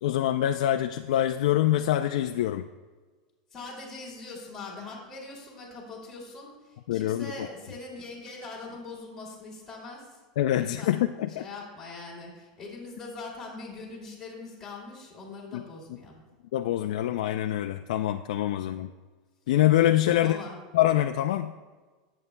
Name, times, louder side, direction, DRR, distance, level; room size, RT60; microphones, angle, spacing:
voice 1, 0.0-2.7 6.9-7.3 10.4-11.4 15.5-15.6 16.5-18.9 19.5-20.4 20.7-21.5, left 12 dB, 80° left, 6 dB, 0.4 m, -25 dB
voice 2, 3.5-10.2 10.5-11.0 11.3-16.2 20.1-20.6, left 3 dB, 10° left, -5 dB, 2.6 m, -42 dB
18.0 x 8.3 x 2.2 m, 1.3 s
supercardioid pair, 180°, 4 cm